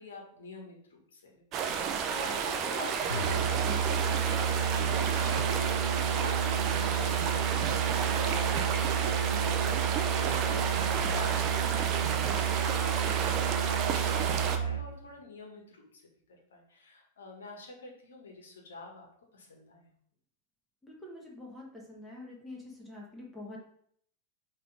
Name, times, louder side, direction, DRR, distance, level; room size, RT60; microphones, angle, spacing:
voice 1, 0.0-1.8 2.1-8.8 9.3-16.1 16.5-19.1 19.3-19.9, left 2 dB, 65° left, 1 dB, 1.5 m, -47 dB
sound 1, 1.5-14.6, right 7 dB, 35° right, 0.7 m, -31 dB
Musical instrument, 3.1-14.9, right 8 dB, 85° right, 0.5 m, -31 dB
voice 2, 20.8-23.6, left 2 dB, 5° left, -3 dB, 1.5 m, -46 dB
5.7 x 3.4 x 5.0 m, 0.65 s
figure-of-eight pair, 90°, 0 cm